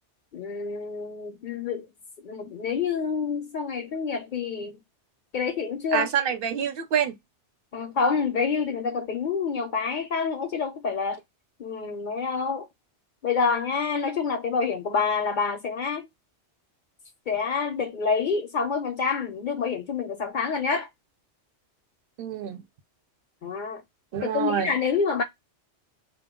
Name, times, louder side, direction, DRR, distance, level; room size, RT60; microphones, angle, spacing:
voice 1, 0.3-1.9 2.2-4.8 5.3-6.1 7.7-11.2 11.6-12.7 13.2-16.1 17.3-20.9 23.4-23.8 24.2-25.2, left 5 dB, 55° left, 0.6 m, -27 dB
voice 2, 5.9-7.2 22.2-22.6 24.1-24.7, right 8 dB, 60° right, 0.7 m, -26 dB
2.2 x 2.1 x 3.5 m
omnidirectional pair, 1.2 m